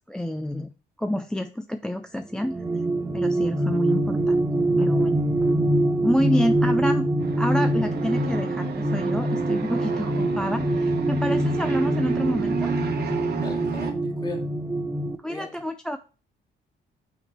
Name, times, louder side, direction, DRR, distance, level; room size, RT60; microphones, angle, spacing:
voice 1, 0.1-0.7 1.0-2.6 3.1-4.4 4.8-5.2 6.0-7.1 7.4-12.7 15.2-16.0, equal, 5° left, 0.4 m, -28 dB
sound 1, 2.4-15.2, right 1 dB, 15° right, 0.7 m, -24 dB
sound 2, 7.2-13.9, right 6 dB, 55° right, 1.1 m, -32 dB
voice 2, 13.3-14.5 15.3-15.6, left 2 dB, 20° left, 2.0 m, -37 dB
6.1 x 4.2 x 4.5 m
cardioid pair, 90°, 20 cm